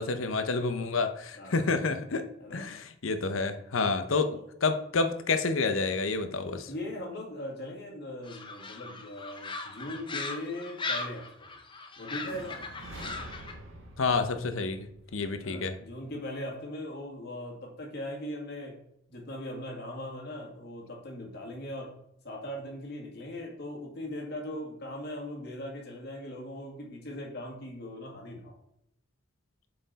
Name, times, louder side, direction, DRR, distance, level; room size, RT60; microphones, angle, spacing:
voice 1, 0.0-6.7 14.0-14.9 15.1-15.7, left 4 dB, 70° left, 9 dB, 0.7 m, -29 dB
voice 2, 1.4-1.7 2.4-2.7 3.3-3.9 4.3-4.4 6.7-11.5 12.0-12.6 15.4-18.8 19.1-21.9 22.2-28.5, left 1 dB, 50° left, 0 dB, 1.9 m, -40 dB
sound 1, 8.2-13.5, left 3 dB, 25° left, 0.6 m, -39 dB
sound 2, 12.3-16.2, right 1 dB, 65° right, 1.4 m, -47 dB
7.6 x 4.4 x 4.0 m, 0.75 s
head